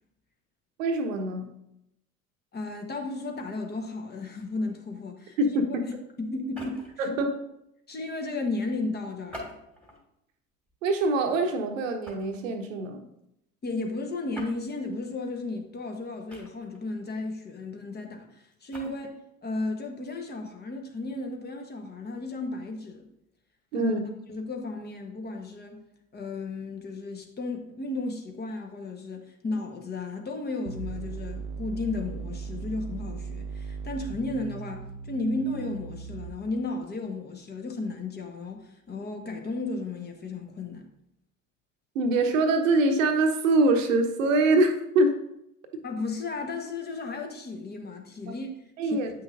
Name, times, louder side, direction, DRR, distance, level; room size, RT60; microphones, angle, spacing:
voice 1, 0.8-1.5 5.4-5.8 7.0-7.4 10.8-13.0 23.7-24.0 41.9-45.2 48.3-48.4 48.8-49.1, right 2 dB, 70° right, 6 dB, 1.0 m, -24 dB
voice 2, 2.5-5.4 5.9-6.9 7.9-9.6 13.6-23.1 23.7-23.9 24.3-25.8 26.1-40.9 45.8-48.5 48.8-49.0, left 2 dB, 25° left, 3 dB, 1.1 m, -34 dB
sound 1, 6.4-7.0 9.3-10.0 10.7-10.9 12.0-12.4 14.3-14.6 16.3-16.8 18.5-18.9, equal, 5° left, 2.0 m, -44 dB
sound 2, 30.7-36.6, right 5 dB, 45° right, 0.5 m, -38 dB
8.4 x 5.9 x 2.5 m, 0.81 s
figure-of-eight pair, 65°, 40 cm